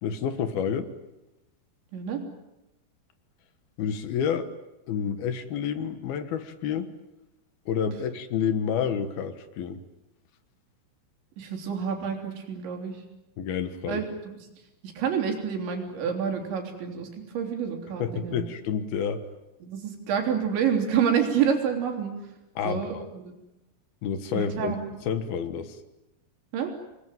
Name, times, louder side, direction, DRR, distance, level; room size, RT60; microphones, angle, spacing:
voice 1, 0.0-0.9 3.8-4.5 4.9-6.9 7.7-9.8 13.4-14.0 18.0-19.3 22.6-23.1 24.0-24.7 25.0-25.8, left 7 dB, 65° left, 10 dB, 3.0 m, -29 dB
voice 2, 1.9-2.2 11.4-13.0 13.9-14.5 14.8-18.4 19.6-22.1 22.6-23.3 24.3-24.8 26.5-26.7, right 7 dB, 85° right, 3 dB, 5.8 m, -28 dB
27.5 x 20.5 x 9.2 m, 0.97 s
omnidirectional pair, 5.1 m